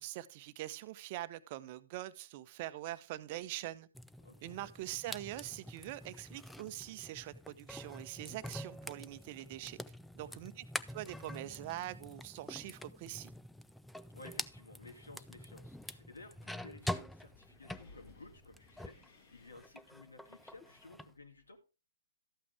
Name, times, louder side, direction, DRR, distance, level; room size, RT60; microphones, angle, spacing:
voice 1, 0.0-3.9 4.4-9.8 10.1-10.6 10.9-13.3, right 15 dB, 35° right, 0.8 m, -43 dB
sound 1, 3.9-19.1 19.4-21.1, left 1 dB, 5° left, 0.4 m, -46 dB
voice 2, 4.2-4.6 10.2-10.4 14.1-18.9 19.3-21.6, left 2 dB, 75° left, 2.5 m, -55 dB
Wind, 14.2-21.6, left 2 dB, 55° left, 2.5 m, -64 dB
13.5 x 8.6 x 3.5 m
figure-of-eight pair, 120°, 0 cm